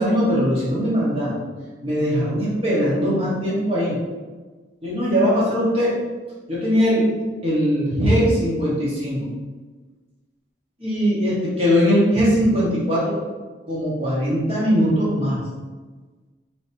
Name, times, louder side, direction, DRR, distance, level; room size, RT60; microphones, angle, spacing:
voice 1, 0.0-1.3 1.8-4.0 4.8-5.9 6.5-7.0 7.4-9.2 10.8-13.1 13.7-15.4, equal, 35° right, -7 dB, 1.5 m, -20 dB
5.2 x 3.3 x 2.8 m, 1.3 s
head